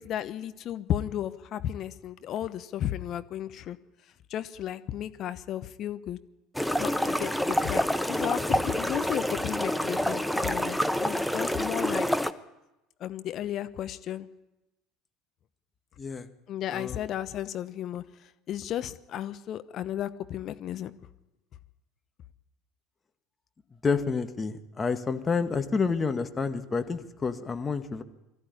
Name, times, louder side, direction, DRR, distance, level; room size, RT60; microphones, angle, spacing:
voice 1, 0.0-3.8 4.3-6.2 6.8-12.1 13.0-14.3 16.5-20.9, left 11 dB, 50° left, 12 dB, 1.0 m, -34 dB
sound 1, 6.5-12.3, equal, ahead, 1.1 m, -27 dB
voice 2, 16.7-17.0 23.8-28.0, left 5 dB, 25° left, 8 dB, 2.0 m, -29 dB
23.0 x 14.5 x 9.9 m, 0.96 s
figure-of-eight pair, 65°, 0 cm